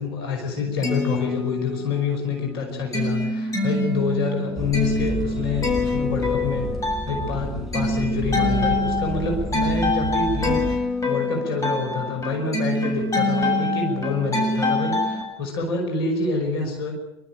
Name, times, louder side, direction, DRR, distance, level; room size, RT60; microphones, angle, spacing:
voice 1, 0.0-6.7 7.1-16.9, left 4 dB, 65° left, 2 dB, 5.4 m, -27 dB
sound 1, 0.6-2.0 2.4-15.2, left 2 dB, 25° left, 8.0 m, -25 dB
sound 2, 4.5-10.8, right 1 dB, ahead, 6.0 m, -31 dB
28.0 x 13.0 x 9.2 m, 0.94 s
figure-of-eight pair, 70°, 13 cm